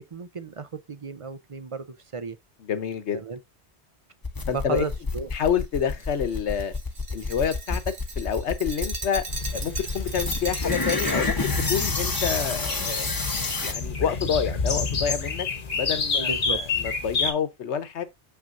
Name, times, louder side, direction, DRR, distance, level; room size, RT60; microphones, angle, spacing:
voice 1, 0.0-2.4 3.1-3.4 4.5-5.3 16.2-16.6, right 5 dB, 40° right, 0.5 m, -34 dB
voice 2, 2.6-3.2 4.5-4.8 5.3-6.7 7.1-9.2 9.5-13.1 13.6-15.5 15.7-18.0, left 7 dB, 80° left, 1.2 m, -28 dB
sound 1, 4.2-13.7, left 3 dB, 20° left, 0.9 m, -29 dB
Glass, 5.4-11.7, right 4 dB, 70° right, 1.5 m, -38 dB
sound 2, 9.3-17.3, left 4 dB, 50° left, 1.2 m, -29 dB
6.6 x 6.0 x 2.5 m
omnidirectional pair, 1.1 m